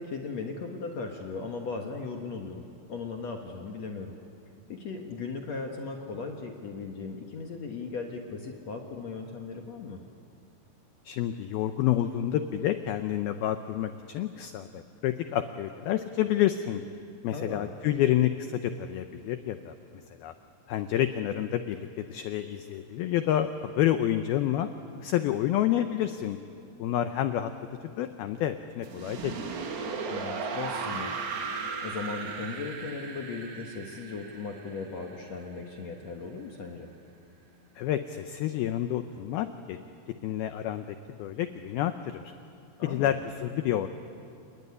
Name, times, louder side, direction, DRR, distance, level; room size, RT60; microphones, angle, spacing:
voice 1, 0.0-4.1 4.7-10.0 17.3-17.7 30.1-31.1 31.5-36.9 42.8-43.2, left 4 dB, 70° left, 2 dB, 1.6 m, -37 dB
voice 2, 11.1-16.8 17.2-20.3 20.7-24.7 25.0-26.4 26.8-27.5 28.0-29.5 37.8-39.8 40.2-40.9 41.2-42.3 42.8-43.9, left 12 dB, 85° left, 9 dB, 2.1 m, -29 dB
sound 1, 28.8-35.8, right 5 dB, 85° right, 4.7 m, -36 dB
29.5 x 20.5 x 9.8 m, 2.5 s
omnidirectional pair, 5.4 m